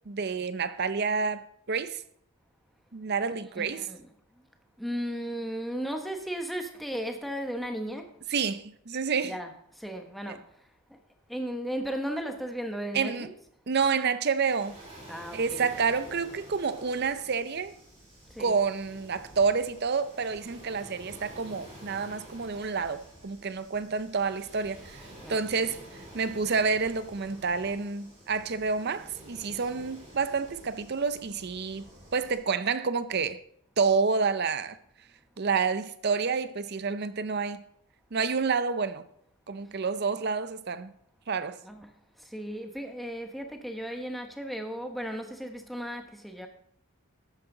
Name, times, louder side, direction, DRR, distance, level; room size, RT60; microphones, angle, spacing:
voice 1, 0.1-2.0 2.9-3.9 8.3-9.3 10.3-10.4 12.9-13.3 13.7-14.8 15.3-17.7 18.4-24.8 25.3-25.8 26.1-31.8 32.1-33.4 33.8-34.8 35.4-37.6 38.1-39.0 39.5-40.9 41.3-41.6, right 5 dB, 45° right, 0.6 m, -29 dB
voice 2, 3.5-4.1 4.8-8.1 9.2-10.5 10.9-11.0 11.3-13.3 15.1-15.7 18.3-18.5 25.2-25.6 41.6-41.9 42.2-46.5, equal, ahead, 0.9 m, -35 dB
Waves surf, 14.4-32.4, right 1 dB, 30° right, 4.1 m, -49 dB
12.0 x 8.9 x 3.8 m
head